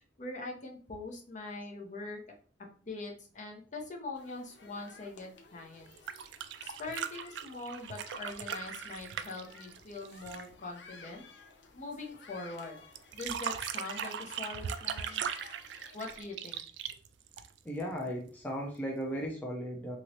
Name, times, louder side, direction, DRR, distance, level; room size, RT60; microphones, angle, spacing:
voice 1, 0.2-2.2 2.9-5.9 6.6-11.2 11.7-12.8 13.1-15.2 15.9-16.6, left 3 dB, 45° left, 1 dB, 0.8 m, -42 dB
sound 1, 4.2-16.2, left 4 dB, 75° left, 0.6 m, -55 dB
sound 2, 5.9-10.5 13.0-17.8 19.2-19.3, right 8 dB, 70° right, 0.3 m, -39 dB
voice 2, 17.6-20.0, equal, 10° left, -2 dB, 0.5 m, -36 dB
3.0 x 2.9 x 2.8 m, 0.41 s
head